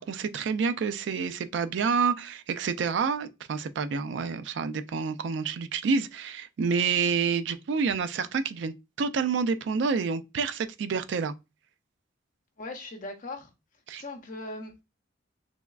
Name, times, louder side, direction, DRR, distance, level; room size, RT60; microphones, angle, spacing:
voice 1, 0.0-11.3 13.9-14.0, right 5 dB, 65° right, 0.3 m, -28 dB
voice 2, 12.6-13.5 13.9-14.8, left 2 dB, 45° left, 0.7 m, -39 dB
3.4 x 3.0 x 2.3 m
head